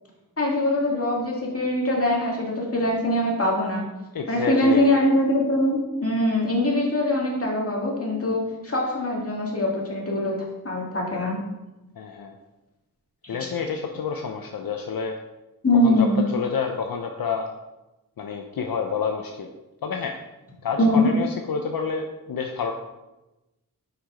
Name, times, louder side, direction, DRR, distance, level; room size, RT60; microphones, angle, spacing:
voice 1, 0.4-3.9 4.3-10.4 10.6-11.4 13.2-13.4 15.6-16.2 20.8-21.1, left 1 dB, 40° left, -2 dB, 2.1 m, -22 dB
voice 2, 4.1-4.9 12.0-12.3 13.3-15.2 15.8-16.1 16.3-17.5 18.2-19.5 19.8-20.2 20.6-22.7, left 5 dB, 80° left, 4 dB, 0.6 m, -28 dB
5.8 x 5.7 x 5.0 m, 1.0 s
wide cardioid pair, 80°, 35 cm